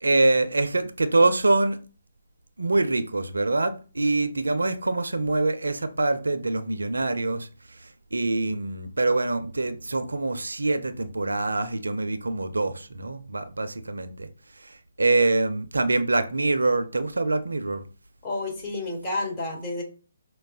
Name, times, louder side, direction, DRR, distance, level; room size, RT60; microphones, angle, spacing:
voice 1, 0.0-1.8 2.6-14.3 14.6-17.8, right 2 dB, 75° right, 0.4 m, -25 dB
voice 2, 18.2-19.8, left 2 dB, 20° left, 1.2 m, -30 dB
5.3 x 2.1 x 2.4 m
figure-of-eight pair, 140°, 0 cm